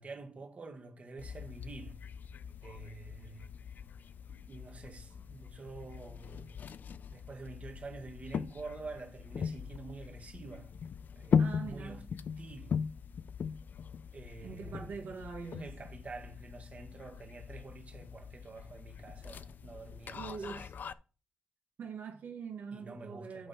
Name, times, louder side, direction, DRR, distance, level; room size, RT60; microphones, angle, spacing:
voice 1, 0.0-2.0 2.6-3.5 4.3-6.6 7.1-10.8 11.2-12.0 12.4-12.8 14.1-15.1 15.6-20.6 22.7-23.5, right 3 dB, 40° right, 1.8 m, -48 dB
sound 1, 1.2-20.9, left 6 dB, 60° left, 0.5 m, -39 dB
voice 2, 11.4-12.1 14.4-15.7 20.1-20.7 21.8-23.5, right 5 dB, 75° right, 2.2 m, -43 dB
10.0 x 5.4 x 4.2 m
wide cardioid pair, 115°, 4 cm